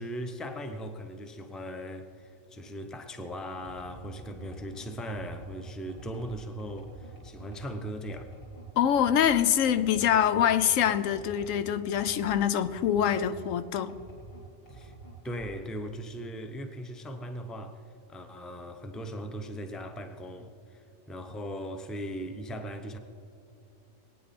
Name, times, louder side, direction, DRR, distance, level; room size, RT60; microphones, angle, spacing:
voice 1, 0.0-8.3 14.7-14.9 15.2-17.8 18.1-23.0, equal, ahead, 0.6 m, -39 dB
sound 1, 3.6-13.5 13.9-15.7, right 2 dB, 35° left, 3.9 m, -48 dB
voice 2, 8.8-13.9, left 9 dB, 85° left, 1.0 m, -25 dB
22.0 x 9.4 x 4.2 m
omnidirectional pair, 1.3 m